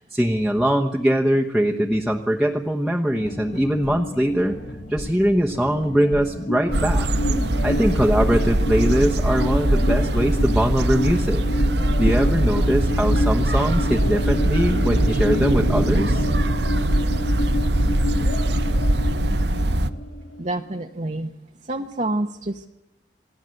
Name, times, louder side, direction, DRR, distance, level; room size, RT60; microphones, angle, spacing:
voice 1, 0.0-4.6 4.9-7.1 7.6-11.4 12.0-16.3, equal, ahead, -1 dB, 1.1 m, -22 dB
sound 1, 3.1-15.5 15.8-16.3, left 1 dB, 70° left, 2.9 m, -36 dB
sound 2, 5.6-20.6, left 1 dB, 85° left, 2.7 m, -30 dB
sound 3, 6.7-19.9, right 1 dB, 65° right, 1.1 m, -21 dB
voice 2, 20.4-21.3 21.6-22.7, right 2 dB, 40° right, 3 dB, 0.9 m, -27 dB
27.0 x 18.0 x 7.8 m, 0.90 s
head